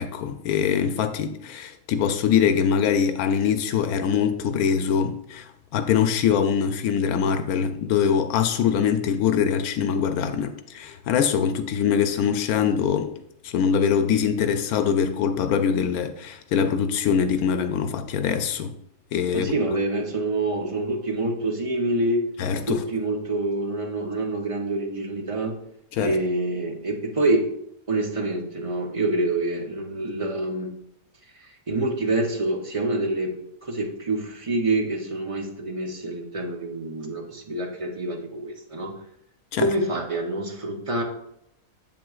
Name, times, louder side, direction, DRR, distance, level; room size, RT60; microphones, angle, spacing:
voice 1, 0.0-13.1 13.4-18.7 19.1-19.5 22.4-22.8 25.9-26.2 39.5-39.7, left 7 dB, 90° left, 1.1 m, -23 dB
voice 2, 19.3-22.2 22.7-25.6 26.0-27.5 27.9-30.7 31.7-38.9 39.6-41.0, right 2 dB, 35° right, 0.6 m, -26 dB
7.6 x 7.4 x 2.4 m
omnidirectional pair, 1.5 m